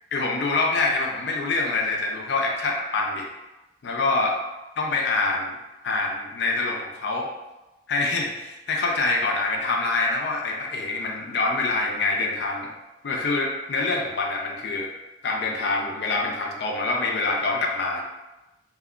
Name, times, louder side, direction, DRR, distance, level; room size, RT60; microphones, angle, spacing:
voice 1, 0.1-3.3 3.8-4.3 4.8-5.5 5.8-7.3 7.9-12.7 13.0-14.9 15.2-18.0, left 3 dB, 65° left, 1 dB, 0.4 m, -25 dB
2.2 x 2.2 x 3.6 m, 1.0 s
head